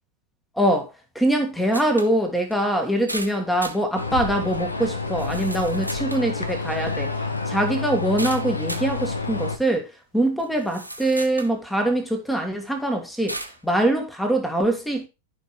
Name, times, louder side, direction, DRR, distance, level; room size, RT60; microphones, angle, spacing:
voice 1, 0.6-7.1 7.5-9.9 10.1-15.1, right 1 dB, 5° left, 1.9 m, -23 dB
sound 1, 1.7-2.1 2.5-2.6 3.1-3.8 4.5-4.6 5.2-6.3 8.2-8.9 9.7-9.8 10.4-11.5 12.1-12.2 13.3-13.6, right 1 dB, 90° right, 1.3 m, -35 dB
sound 2, 4.0-9.6, left 3 dB, 80° left, 1.3 m, -28 dB
14.0 x 5.4 x 3.1 m
figure-of-eight pair, 90°, 0 cm